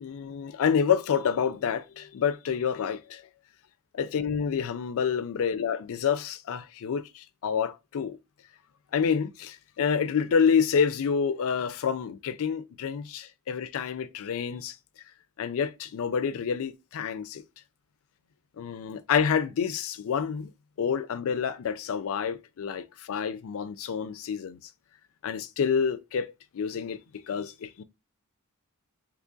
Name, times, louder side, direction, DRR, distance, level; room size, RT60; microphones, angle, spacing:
voice 1, 0.0-3.2 4.0-8.2 8.9-14.7 15.4-17.4 18.6-20.5 20.8-24.6 25.2-27.0 27.3-27.8, left 7 dB, 65° left, 0.4 m, -28 dB
3.0 x 2.4 x 3.7 m
head